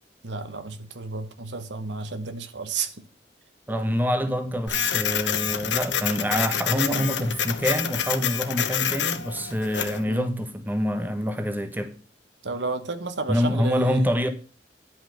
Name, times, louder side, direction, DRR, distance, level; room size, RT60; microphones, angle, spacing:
voice 1, 0.2-3.1 6.8-7.2 10.1-10.4 12.4-14.1, right 4 dB, 80° right, 1.2 m, -32 dB
voice 2, 3.7-12.0 13.3-14.3, equal, 10° right, 1.2 m, -26 dB
Printer, 4.7-10.0, left 8 dB, 85° left, 1.1 m, -27 dB
10.5 x 5.6 x 6.5 m
head